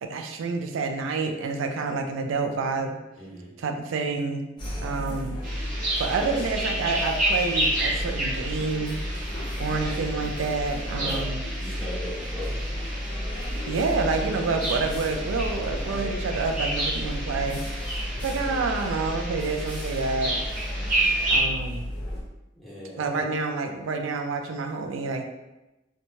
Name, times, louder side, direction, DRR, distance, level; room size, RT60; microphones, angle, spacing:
voice 1, 0.0-3.0 3.6-4.5 4.8-5.4 6.0-9.0 9.6-11.5 13.7-17.8 18.2-20.4 21.3-21.9 23.0-25.2, right 4 dB, 85° right, 5 dB, 0.4 m, -28 dB
voice 2, 3.2-3.5 6.2-6.4 11.0-11.3 11.6-12.6 18.1-18.4 22.5-23.2, equal, ahead, -8 dB, 1.0 m, -38 dB
sound 1, 4.6-22.2, left 1 dB, 25° left, 0.6 m, -33 dB
sound 2, 5.4-21.4, right 1 dB, 45° right, 0.9 m, -31 dB
2.9 x 2.2 x 2.7 m, 0.99 s
head